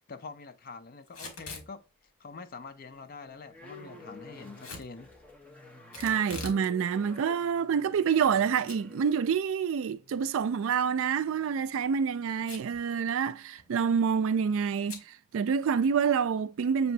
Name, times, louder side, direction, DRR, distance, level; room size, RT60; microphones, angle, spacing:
voice 1, 0.0-1.8 2.2-5.1, left 4 dB, 45° left, 0.5 m, -45 dB
Packing tape duct tape / Tearing, 1.1-1.7 4.6-4.9 5.9-6.6 7.0-7.1 7.8-8.4 8.7-8.8 9.2-9.3 11.2-11.5 12.4-12.8 13.1-13.2 13.4-13.8 14.9-15.1, left 3 dB, 65° left, 1.5 m, -42 dB
sound 1, 1.1-1.8 2.3-12.8, left 2 dB, 5° left, 0.8 m, -53 dB
voice 2, 6.0-16.9, right 7 dB, 65° right, 0.3 m, -27 dB
6.6 x 3.0 x 2.7 m
head